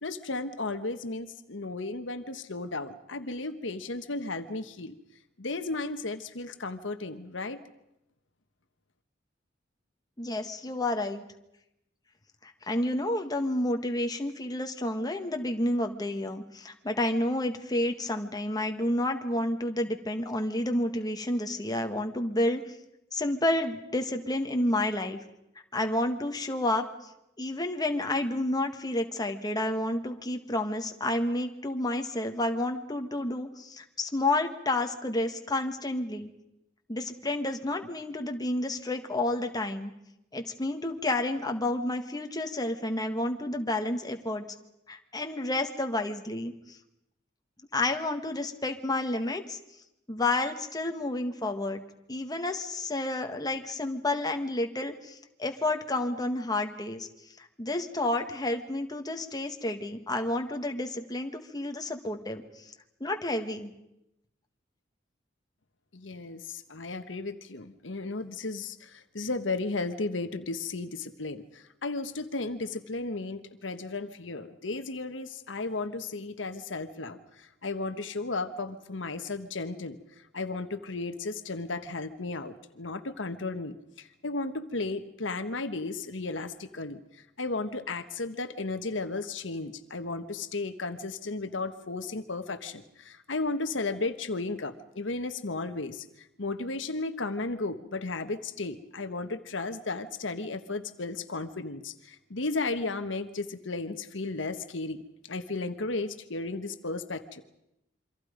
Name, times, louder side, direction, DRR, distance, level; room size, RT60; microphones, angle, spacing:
voice 1, 0.0-4.9 5.4-7.6 65.9-80.0 80.3-96.0 96.4-105.0 105.3-107.4, left 3 dB, 80° left, 9 dB, 1.4 m, -34 dB
voice 2, 10.2-11.2 12.4-22.6 23.1-25.2 25.7-26.9 27.4-36.3 36.9-39.9 40.3-44.4 44.9-46.8 47.7-49.6 50.1-51.8 52.1-57.1 57.4-62.7 63.0-63.7, left 1 dB, 20° left, 5 dB, 1.7 m, -30 dB
27.5 x 25.0 x 5.2 m, 0.86 s
head